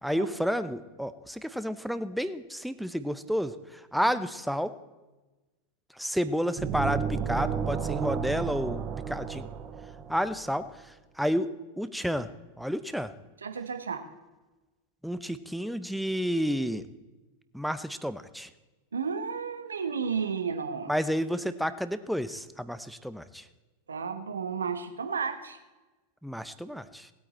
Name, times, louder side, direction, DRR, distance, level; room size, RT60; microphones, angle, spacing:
voice 1, 0.0-4.7 6.0-9.5 10.1-10.6 11.2-12.3 12.6-13.1 15.0-16.8 17.5-18.5 20.9-23.4 26.2-27.1, equal, ahead, 12 dB, 0.7 m, -30 dB
sound 1, 6.6-10.4, right 7 dB, 30° right, 1.1 m, -32 dB
voice 2, 13.4-14.0 18.9-20.9 23.9-25.6, right 6 dB, 70° right, 7 dB, 1.2 m, -32 dB
19.0 x 8.8 x 4.3 m, 1.2 s
figure-of-eight pair, 90°, 0 cm